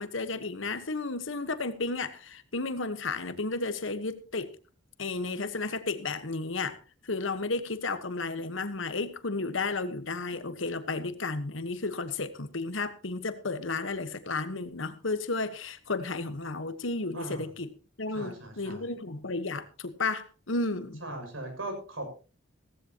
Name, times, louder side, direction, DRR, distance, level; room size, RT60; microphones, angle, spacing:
voice 1, 0.0-4.5 5.0-6.8 7.0-17.7 18.0-21.0, left 3 dB, 70° left, 1.3 m, -33 dB
voice 2, 18.1-18.9 21.0-22.1, right 1 dB, 90° right, 6.7 m, -38 dB
16.5 x 15.0 x 3.0 m
head